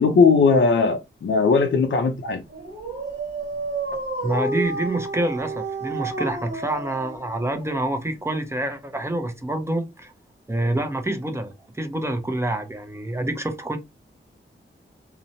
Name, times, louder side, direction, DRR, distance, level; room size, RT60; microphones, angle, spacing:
voice 1, 0.0-2.4, left 4 dB, 70° left, 0.5 m, -18 dB
Dog, 2.5-8.2, right 2 dB, 60° right, 1.3 m, -31 dB
voice 2, 4.2-10.1 10.5-13.8, right 1 dB, 15° right, 0.5 m, -27 dB
2.9 x 2.0 x 2.6 m
wide cardioid pair, 125°, 21 cm